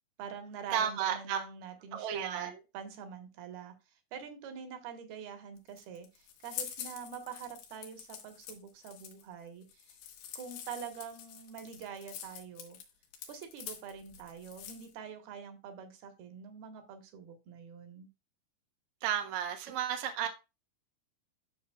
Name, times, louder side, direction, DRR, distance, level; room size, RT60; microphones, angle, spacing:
voice 1, 0.2-3.7 4.1-10.0 10.4-12.8 13.3-18.1, right 7 dB, 65° right, 2.9 m, -45 dB
voice 2, 0.7-1.4 1.9-2.6 19.0-20.3, right 9 dB, 80° right, 1.6 m, -33 dB
sound 1, 5.6-14.9, left 9 dB, 85° left, 4.0 m, -46 dB
12.5 x 6.3 x 2.3 m
omnidirectional pair, 5.4 m